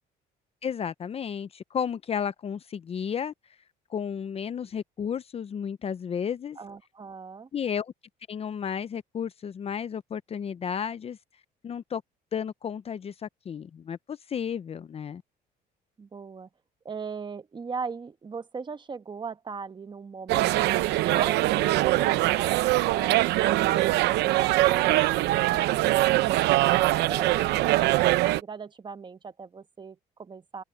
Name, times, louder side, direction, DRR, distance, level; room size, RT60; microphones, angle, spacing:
voice 1, 0.6-3.3 3.9-6.6 7.5-7.9 8.3-11.2 11.6-12.0 12.3-15.2, left 7 dB, 35° left, 0.7 m, -33 dB
voice 2, 6.6-7.5 16.0-16.5 16.8-23.1 23.4-30.6, right 5 dB, 25° right, 1.3 m, -39 dB
sound 1, 20.3-28.4, right 17 dB, 85° right, 0.8 m, -23 dB
cardioid pair, 110°, 17 cm